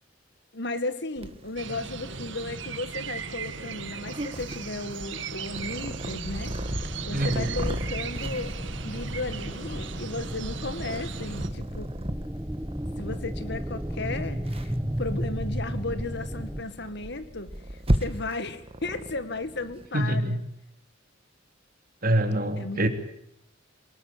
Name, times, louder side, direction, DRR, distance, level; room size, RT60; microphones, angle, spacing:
voice 1, 0.5-8.5 8.8-11.9 13.0-14.7 15.0-17.5 18.0-20.4 22.6-22.9, left 2 dB, 60° left, 12 dB, 2.0 m, -35 dB
Purr, 1.2-19.9, right 1 dB, 30° right, 1.8 m, -36 dB
sound 1, 1.6-11.5, right 5 dB, 65° right, 1.9 m, -38 dB
sound 2, 6.8-16.6, equal, 10° right, 1.3 m, -34 dB
voice 2, 7.1-7.6 19.9-20.4 22.0-22.9, right 1 dB, 45° right, 7 dB, 2.9 m, -25 dB
24.0 x 20.0 x 8.6 m, 0.74 s
head